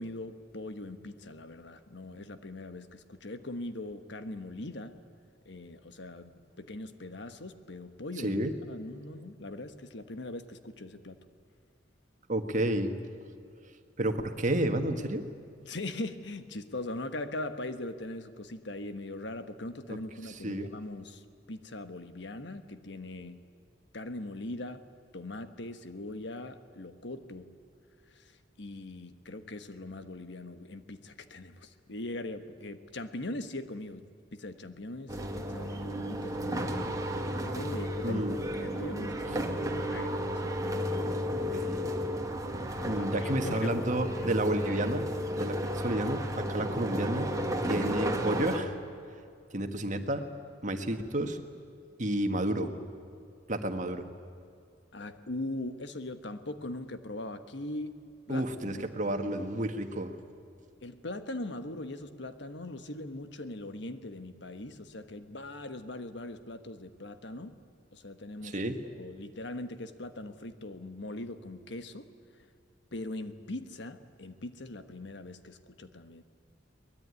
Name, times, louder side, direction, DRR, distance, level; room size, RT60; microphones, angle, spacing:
voice 1, 0.0-5.0 5.4-8.4 8.7-11.2 15.6-21.2 21.5-23.4 23.9-27.6 28.1-28.3 28.6-36.9 37.4-40.5 40.9-41.6 42.5-44.3 54.9-58.0 58.3-58.8 60.8-67.6 67.9-72.1 72.9-76.2, left 2 dB, 65° left, 10 dB, 1.4 m, -41 dB
voice 2, 8.2-8.5 12.3-12.9 14.0-15.2 19.9-20.0 20.3-20.7 38.0-38.4 41.5-41.8 42.9-45.1 45.4-47.3 47.7-48.8 49.5-50.2 50.6-51.4 52.0-52.7 53.5-54.0 58.3-60.1 68.4-68.8, right 1 dB, 45° right, 7 dB, 1.7 m, -31 dB
sound 1, 35.1-48.6, equal, 20° right, 2.1 m, -33 dB
23.0 x 20.0 x 9.7 m, 2.4 s
head